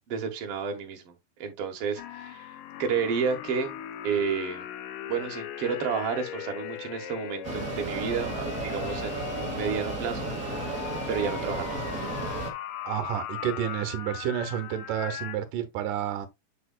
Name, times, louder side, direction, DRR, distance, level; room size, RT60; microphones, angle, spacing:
voice 1, 0.1-1.1 1.4-2.5 2.8-3.7 4.0-4.7 5.1-10.3 11.1-11.9, right 6 dB, 55° right, 2.1 m, -31 dB
sound 1, 2.0-15.4, left 11 dB, 90° left, 2.4 m, -39 dB
Mechanisms, 7.4-12.5, right 2 dB, 30° right, 1.8 m, -33 dB
voice 2, 12.8-16.3, right 10 dB, 85° right, 2.6 m, -30 dB
7.6 x 6.6 x 2.3 m
omnidirectional pair, 3.7 m